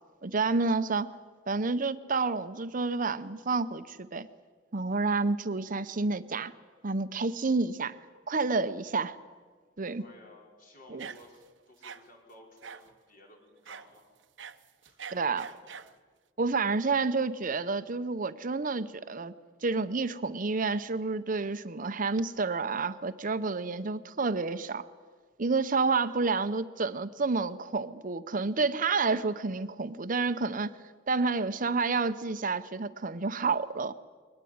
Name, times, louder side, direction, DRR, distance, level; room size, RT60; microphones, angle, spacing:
voice 1, 0.2-1.1 1.5-4.3 4.7-6.5 6.8-8.0 8.3-9.2 9.8-10.0 10.9-11.1 15.1-15.5 16.4-19.3 19.6-24.8 25.4-30.8 31.1-33.9, right 4 dB, 45° right, 12 dB, 0.8 m, -29 dB
voice 2, 10.0-14.1 14.8-15.8, left 1 dB, 50° left, 1 dB, 5.5 m, -56 dB
sound 1, 11.0-11.5 11.8-12.0 12.6-12.9 13.7-13.9 14.2-16.0, right 7 dB, 90° right, 1.0 m, -44 dB
22.5 x 19.5 x 9.5 m, 1.5 s
head